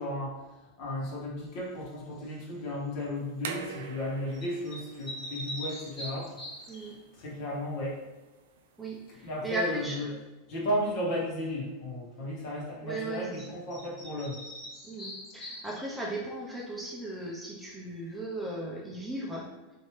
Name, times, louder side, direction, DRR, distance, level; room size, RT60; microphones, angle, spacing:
voice 1, 0.0-8.0 9.1-10.1 10.5-14.4, equal, 55° left, -3 dB, 1.3 m, -35 dB
sound 1, 2.2-2.5 4.3-6.9 13.3-13.4 13.7-16.1, equal, 25° left, 1.2 m, -42 dB
sound 2, 3.2-9.8, right 5 dB, 80° right, 0.4 m, -46 dB
voice 2, 8.8-10.2 12.8-13.2 14.8-19.5, right 1 dB, 5° right, -4 dB, 0.7 m, -36 dB
3.1 x 2.8 x 3.2 m, 1.1 s
hypercardioid pair, 115°, 0 cm